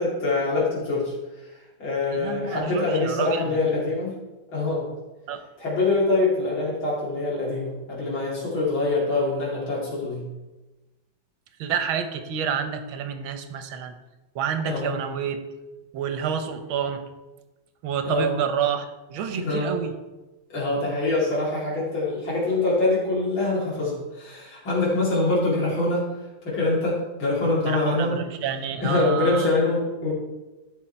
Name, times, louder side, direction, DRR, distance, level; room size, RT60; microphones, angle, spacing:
voice 1, 0.0-1.5 1.8-4.1 4.5-4.9 5.6-10.2 14.7-15.0 18.0-18.3 19.4-19.7 20.5-26.1 26.4-28.1 28.8-30.1, left 2 dB, 80° left, -6 dB, 3.2 m, -24 dB
voice 2, 2.1-3.6 5.3-5.4 11.6-13.9 14.3-15.4 15.9-17.0 17.8-19.9 27.7-29.5, right 7 dB, 85° right, 8 dB, 1.7 m, -28 dB
13.0 x 5.5 x 4.4 m, 1.1 s
omnidirectional pair, 2.2 m